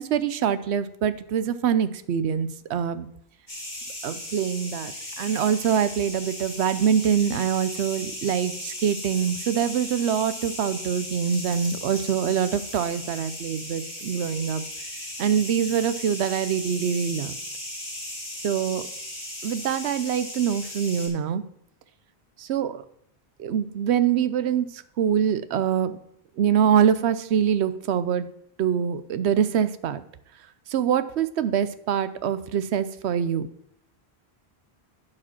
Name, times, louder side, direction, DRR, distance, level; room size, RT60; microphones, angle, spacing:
voice 1, 0.0-3.1 4.0-4.9 5.2-14.6 15.2-17.4 18.4-18.8 19.4-21.4 22.4-22.8 23.4-26.0 26.4-28.3 28.6-30.0 30.7-33.5, right 8 dB, 85° right, 13 dB, 0.9 m, -24 dB
sound 1, 3.5-21.1, left 1 dB, 45° left, 3.2 m, -37 dB
10.5 x 5.0 x 5.8 m, 0.72 s
omnidirectional pair, 1.1 m